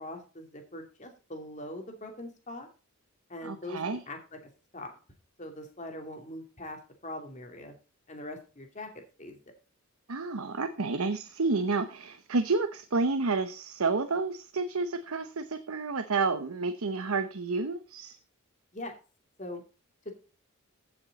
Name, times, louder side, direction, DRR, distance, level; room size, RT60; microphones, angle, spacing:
voice 1, 0.0-2.7 3.3-4.4 4.7-5.0 5.4-7.7 8.1-9.4 18.7-19.0 19.4-19.6 20.0-20.1, left 1 dB, 35° left, 3 dB, 2.7 m, -42 dB
voice 2, 3.4-4.0 10.1-18.2, right 3 dB, 85° right, 9 dB, 0.9 m, -30 dB
15.0 x 6.7 x 4.1 m, 0.33 s
head